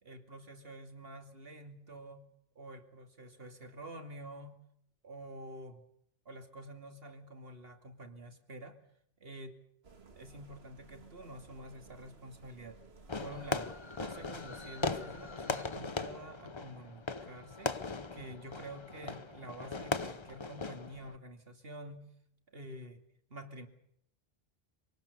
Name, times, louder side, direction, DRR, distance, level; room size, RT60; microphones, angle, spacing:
voice 1, 0.0-2.3 2.6-4.6 5.0-5.8 6.3-8.8 9.2-9.6 10.2-12.8 13.2-22.1 22.5-23.0 23.3-23.7, right 1 dB, 70° right, 6 dB, 2.7 m, -48 dB
sound 1, 9.8-15.3, right 4 dB, 85° right, 2.1 m, -57 dB
Fireworks, 13.1-21.2, left 3 dB, 30° left, 0.9 m, -39 dB
25.5 x 18.5 x 6.8 m, 0.72 s
omnidirectional pair, 1.0 m